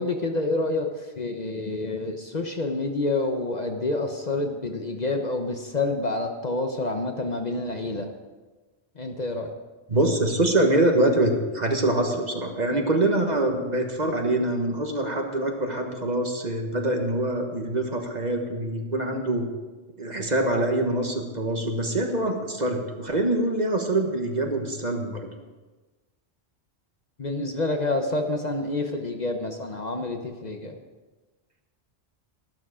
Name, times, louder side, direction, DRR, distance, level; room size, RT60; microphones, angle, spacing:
voice 1, 0.0-8.1 9.0-9.5 27.2-30.8, left 2 dB, 40° left, 4 dB, 1.0 m, -28 dB
voice 2, 9.9-19.4 20.0-25.3, right 1 dB, 40° right, 3 dB, 1.5 m, -24 dB
12.0 x 12.0 x 5.0 m, 1.2 s
omnidirectional pair, 1.1 m